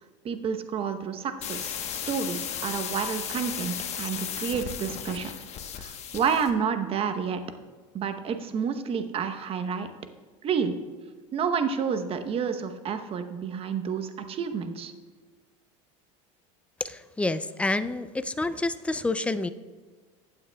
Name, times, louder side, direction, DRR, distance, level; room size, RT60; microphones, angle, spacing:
voice 1, 0.2-5.3 5.8-7.4 7.9-9.9 10.4-10.8 11.3-14.9, right 6 dB, 35° right, 8 dB, 0.9 m, -29 dB
sound 1, 1.4-6.5, left 8 dB, 40° left, 1.1 m, -35 dB
voice 2, 16.8-19.5, left 2 dB, 5° left, 12 dB, 0.4 m, -28 dB
15.5 x 8.7 x 2.3 m, 1.4 s
supercardioid pair, 115°, 17 cm